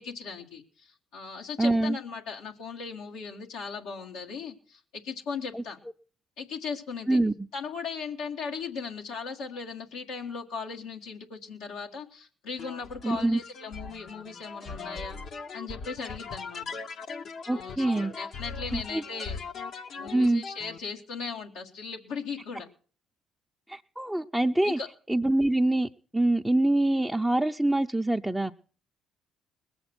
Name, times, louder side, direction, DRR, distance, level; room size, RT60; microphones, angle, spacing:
voice 1, 0.0-5.8 6.4-7.2 7.5-15.2 15.5-16.8 17.5-19.4 20.0-22.7 24.6-24.9, left 5 dB, 80° left, -1 dB, 1.7 m, -38 dB
voice 2, 1.6-2.0 5.5-5.6 7.1-7.3 13.0-13.4 17.5-18.1 18.7-19.0 20.1-20.4 23.7-24.8 25.1-28.5, right 1 dB, 5° right, 2 dB, 0.7 m, -25 dB
sound 1, 12.6-20.8, left 5 dB, 60° left, 1.1 m, -40 dB
20.0 x 8.1 x 6.1 m, 0.42 s
hypercardioid pair, 55°, 0 cm